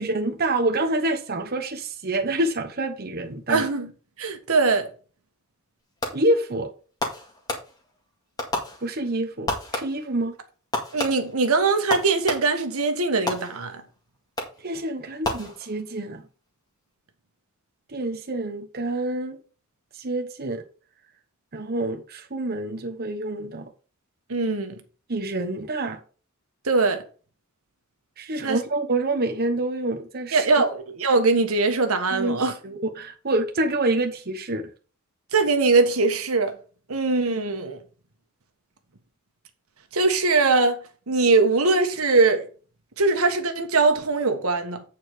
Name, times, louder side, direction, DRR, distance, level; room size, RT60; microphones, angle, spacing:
voice 1, 0.0-3.6 6.1-6.7 8.8-10.3 14.6-16.2 17.9-19.4 19.9-20.6 21.5-23.7 25.1-26.0 28.2-30.5 32.1-34.7, right 2 dB, 45° right, 1.1 m, -27 dB
voice 2, 3.5-3.9 4.2-4.9 10.9-13.8 24.3-24.8 26.6-27.0 28.4-28.6 30.3-32.5 35.3-36.6 36.9-37.8 39.9-40.8 41.1-42.5 43.0-44.8, right 3 dB, 90° right, 1.5 m, -21 dB
Fireworks, 6.0-6.4 7.0-8.0 8.4-9.2 9.5-10.2 10.7-12.7 13.3-13.9 14.4-14.8 15.2-16.0, left 2 dB, 20° left, 1.9 m, -32 dB
8.9 x 4.7 x 4.9 m
head